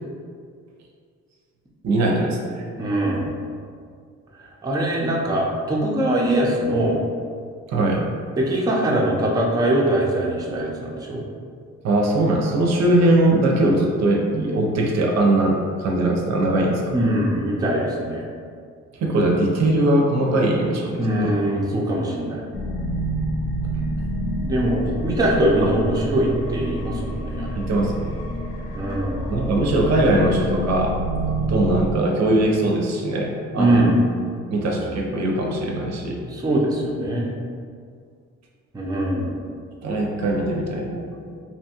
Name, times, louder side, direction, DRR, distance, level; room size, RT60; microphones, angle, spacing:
voice 1, 1.8-2.6 7.7-8.1 11.8-16.9 19.0-21.3 27.6-28.1 29.3-31.0 31.5-33.8 34.5-36.2 39.8-41.4, right 1 dB, 60° right, -1 dB, 0.5 m, -21 dB
voice 2, 2.8-3.3 4.3-7.0 8.4-11.2 16.9-18.2 21.0-22.4 24.4-27.5 28.8-29.3 33.6-34.0 36.3-37.3 38.7-39.4, right 1 dB, 15° right, -3 dB, 0.4 m, -22 dB
sound 1, 22.5-31.9, right 1 dB, 80° left, 0.5 m, -28 dB
2.8 x 2.2 x 2.8 m, 2.1 s
cardioid pair, 90°, 30 cm